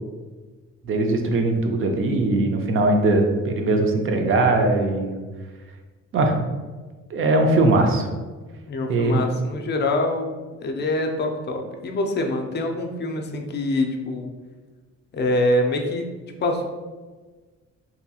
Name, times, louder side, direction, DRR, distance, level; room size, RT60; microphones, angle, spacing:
voice 1, 0.8-5.1 6.1-6.4 7.1-8.1 8.9-9.3, right 2 dB, 45° right, 3 dB, 0.5 m, -20 dB
voice 2, 8.7-10.3 10.6-14.3 15.1-16.1 16.4-16.7, left 2 dB, 35° left, 3 dB, 0.4 m, -25 dB
2.8 x 2.7 x 2.3 m, 1.3 s
cardioid pair, 90°, 30 cm